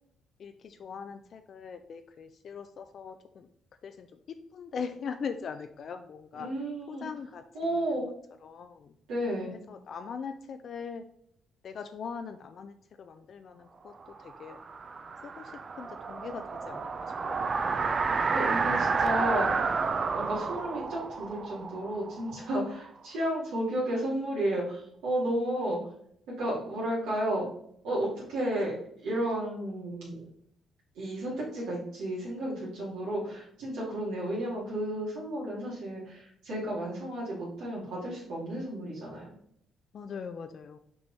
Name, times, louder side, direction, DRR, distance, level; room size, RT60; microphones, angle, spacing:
voice 1, 0.4-3.5 3.8-6.5 6.9-7.4 8.4-8.9 9.7-11.0 11.6-13.9 14.2-14.6 15.2-17.5 39.9-40.8, left 6 dB, 60° left, 7 dB, 0.5 m, -41 dB
voice 2, 6.3-7.1 7.5-8.1 9.1-9.5 18.3-19.8 20.1-25.8 26.3-27.4 27.8-30.2 30.9-39.3, right 1 dB, 90° right, -7 dB, 2.6 m, -32 dB
sound 1, 14.2-22.9, right 4 dB, 40° right, 0.6 m, -31 dB
6.2 x 4.6 x 4.2 m, 0.69 s
cardioid pair, 90°, 0 cm